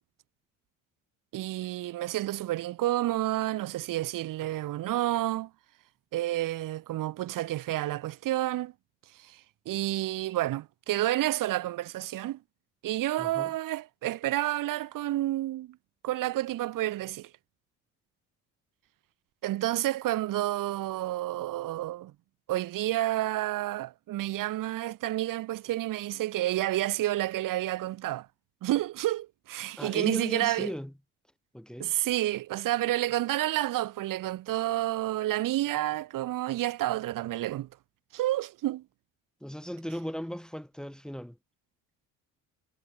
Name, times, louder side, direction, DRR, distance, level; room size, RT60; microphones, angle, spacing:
voice 1, 1.3-5.5 6.1-8.7 9.2-9.4 9.7-12.4 12.8-15.8 16.0-17.3 19.4-22.1 22.5-28.3 28.6-30.7 31.8-37.7 38.1-38.8, right 15 dB, 75° right, 5.5 m, -30 dB
voice 2, 13.2-13.5 29.8-30.9 31.5-32.0 39.4-41.4, equal, ahead, 3.9 m, -37 dB
cardioid pair, 95°, 33 cm